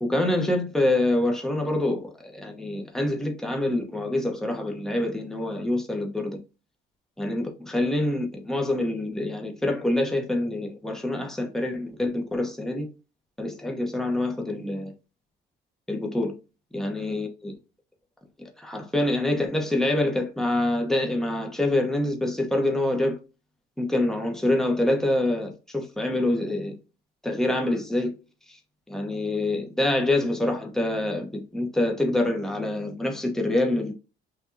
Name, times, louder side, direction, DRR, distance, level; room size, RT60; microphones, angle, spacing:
voice 1, 0.0-6.4 7.2-12.9 13.4-14.9 15.9-16.3 16.7-17.5 18.4-23.2 23.8-26.7 27.2-28.1 28.9-33.9, left 1 dB, ahead, 1.0 m, -26 dB
6.1 x 2.7 x 2.7 m
cardioid pair, 90°, 20 cm